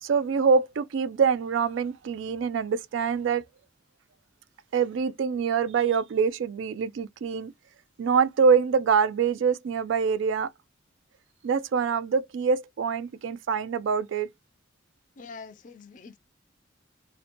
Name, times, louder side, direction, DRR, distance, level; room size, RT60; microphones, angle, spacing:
voice 1, 0.0-3.4 4.7-7.5 8.0-10.5 11.4-14.3, right 6 dB, 75° right, 0.3 m, -25 dB
voice 2, 15.2-16.2, left 4 dB, 40° left, 0.4 m, -44 dB
2.6 x 2.1 x 2.5 m
head